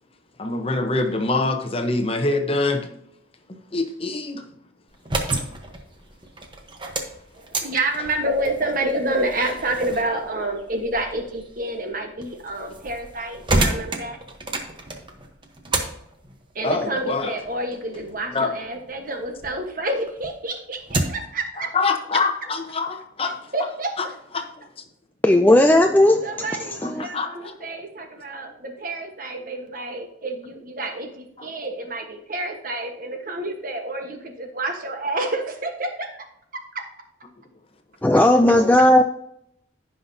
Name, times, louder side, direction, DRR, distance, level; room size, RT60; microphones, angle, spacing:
voice 1, 0.4-3.0 3.7-4.4 16.6-17.3 18.3-18.5 21.6-23.4 24.0-24.1 24.3-24.5 26.8-27.5 31.4-31.5, left 3 dB, 30° left, 0.9 m, -25 dB
sound 1, 4.9-19.6 20.0-21.4, right 2 dB, 25° right, 1.0 m, -31 dB
voice 2, 7.6-14.2 16.5-21.7 23.5-24.1 25.7-25.8 26.2-36.2 36.5-36.9, right 2 dB, 45° right, 1.3 m, -28 dB
voice 3, 25.2-26.5 26.8-27.1 38.0-39.0, left 1 dB, 10° left, 0.3 m, -15 dB
15.5 x 5.8 x 2.8 m
head